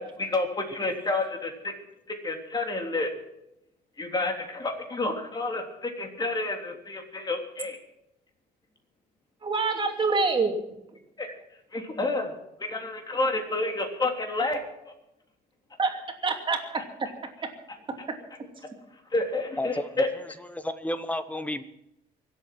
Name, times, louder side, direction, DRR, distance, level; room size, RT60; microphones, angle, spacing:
voice 1, 0.0-1.7 2.1-3.1 4.0-7.8 11.2-11.3 11.7-12.3 12.6-14.6 17.7-17.8 19.1-20.1, left 2 dB, 25° left, 3 dB, 3.3 m, -29 dB
voice 2, 9.4-10.6 11.2-11.3 15.8-17.1, right 4 dB, 30° right, 3 dB, 2.9 m, -26 dB
voice 3, 19.6-21.6, left 1 dB, 10° left, 11 dB, 1.3 m, -32 dB
25.0 x 8.3 x 6.0 m, 0.83 s
cardioid pair, 110°, 17 cm